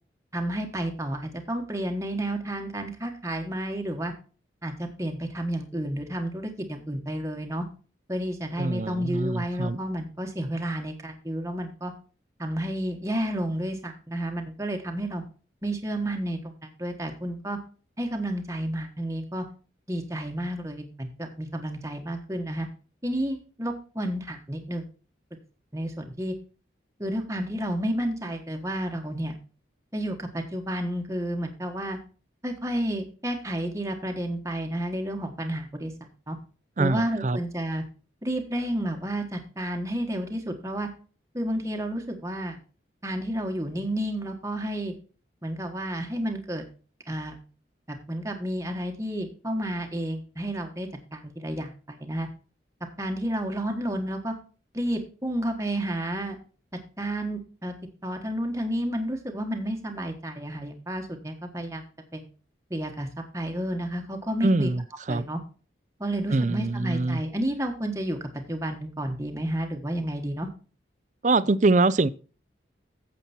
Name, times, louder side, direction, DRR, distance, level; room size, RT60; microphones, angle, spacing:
voice 1, 0.3-4.1 4.6-7.7 8.1-11.9 12.4-15.2 15.6-17.6 18.0-19.5 19.9-22.7 23.0-24.9 25.7-26.3 27.0-29.4 29.9-32.0 32.4-36.4 36.8-37.8 38.2-40.9 41.3-42.6 43.0-44.9 45.4-46.6 47.1-47.4 47.9-52.3 53.0-54.3 54.7-56.4 57.0-57.7 58.0-61.9 62.1-62.2 62.7-63.1 63.3-64.7 65.1-65.4 66.0-70.5, right 1 dB, 15° right, 1.4 m, -31 dB
voice 2, 8.6-9.8 36.8-37.4 64.4-65.3 66.3-67.2 71.2-72.1, right 2 dB, 40° right, 0.5 m, -24 dB
9.2 x 7.6 x 4.3 m
head